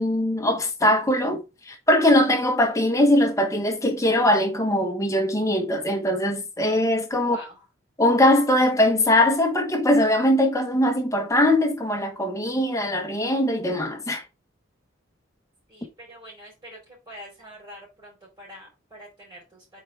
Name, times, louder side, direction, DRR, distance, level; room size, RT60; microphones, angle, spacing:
voice 1, 0.0-7.4 8.0-14.2, left 1 dB, 15° left, 1.4 m, -21 dB
voice 2, 7.2-7.6 15.7-19.8, equal, 15° right, 4.4 m, -45 dB
8.6 x 4.7 x 3.5 m
head